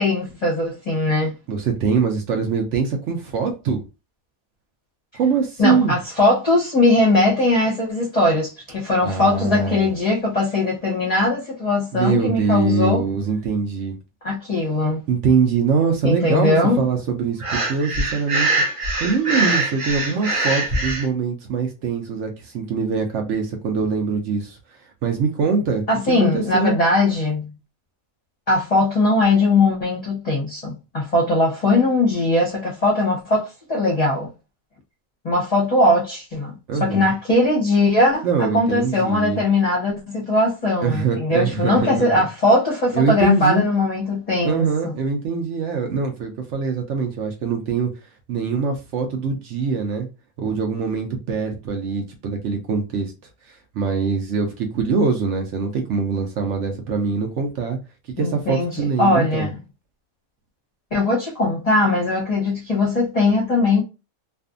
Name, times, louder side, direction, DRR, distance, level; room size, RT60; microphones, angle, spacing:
voice 1, 0.0-1.3 5.6-13.0 14.2-15.0 16.0-16.8 25.9-27.5 28.5-34.3 35.2-36.5 36.8-44.9 58.2-59.6 60.9-63.8, left 2 dB, 35° left, 0.7 m, -20 dB
voice 2, 1.5-3.8 5.1-6.0 9.0-9.9 11.9-13.9 15.1-18.5 19.0-24.6 25.0-25.8 26.2-26.8 36.7-37.1 38.2-39.4 40.8-42.1 42.9-43.6 44.4-47.9 48.3-50.1 50.4-53.1 53.5-57.8 58.2-59.5, right 5 dB, 70° right, 0.8 m, -23 dB
Breathing, 17.4-21.1, right 2 dB, 45° right, 0.4 m, -23 dB
2.5 x 2.4 x 2.4 m
omnidirectional pair, 1.4 m